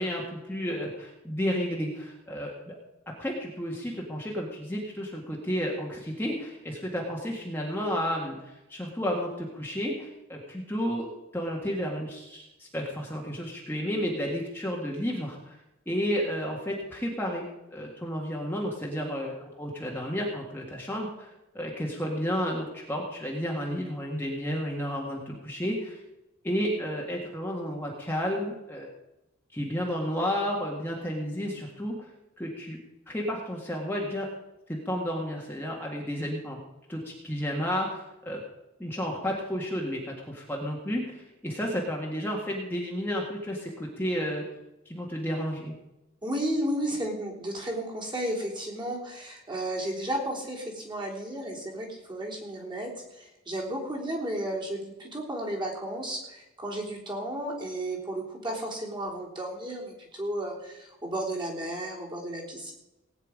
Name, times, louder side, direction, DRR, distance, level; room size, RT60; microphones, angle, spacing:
voice 1, 0.0-2.8 3.2-15.6 15.9-21.3 21.5-26.0 26.4-28.9 29.5-32.1 32.4-32.8 33.1-34.3 34.7-36.6 36.9-38.4 38.8-44.4 44.9-45.7, equal, 10° left, -2 dB, 1.8 m, -32 dB
voice 2, 46.2-62.7, right 1 dB, 25° right, -2 dB, 3.4 m, -33 dB
18.5 x 9.2 x 5.1 m, 0.95 s
head